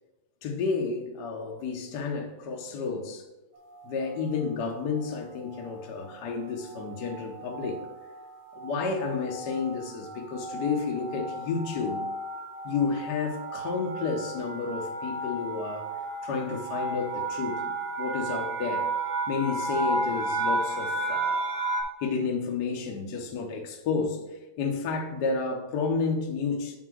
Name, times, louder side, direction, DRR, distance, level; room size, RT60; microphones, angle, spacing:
voice 1, 0.4-3.2 3.8-7.8 8.5-12.0 12.6-15.9 16.2-18.9 19.3-21.5 22.0-24.2 24.6-26.8, left 4 dB, 70° left, 2 dB, 0.9 m, -31 dB
sound 1, 3.7-4.2 4.9-5.3 5.6-5.8 6.0-21.8, right 2 dB, 60° right, 2.5 m, -33 dB
9.0 x 3.8 x 6.1 m, 1.1 s
omnidirectional pair, 3.3 m